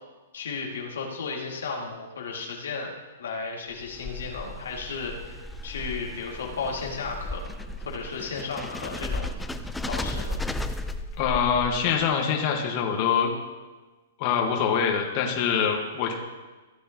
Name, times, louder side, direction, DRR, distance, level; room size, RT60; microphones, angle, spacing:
voice 1, 0.3-5.4 5.6-7.5 7.8-9.3 9.9-10.4, left 4 dB, 80° left, -1 dB, 2.3 m, -34 dB
sound 1, 3.7-12.0, left 1 dB, 5° left, 0.5 m, -35 dB
voice 2, 11.2-13.3 14.2-16.1, left 7 dB, 40° left, 1 dB, 1.6 m, -24 dB
16.0 x 8.3 x 3.0 m, 1.2 s
hypercardioid pair, 140°, 0 cm